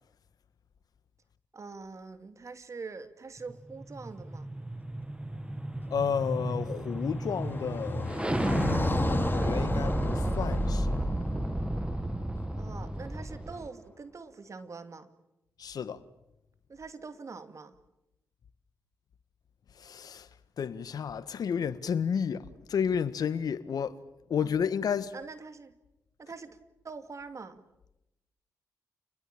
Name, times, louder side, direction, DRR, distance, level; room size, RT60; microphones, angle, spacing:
voice 1, 1.5-4.5 12.5-15.1 16.7-17.8 24.4-24.5 25.1-25.8 26.2-26.6 26.8-27.6, right 4 dB, 45° right, 2.4 m, -44 dB
sound 1, 3.5-13.7, right 1 dB, 15° right, 1.8 m, -32 dB
Car passing by, 5.7-12.9, left 3 dB, 30° left, 3.1 m, -37 dB
voice 2, 5.9-11.0 15.6-16.0 19.7-20.3 20.6-24.0 24.3-25.1, left 7 dB, 65° left, 1.6 m, -32 dB
29.5 x 21.0 x 8.8 m
supercardioid pair, 45°, 7 cm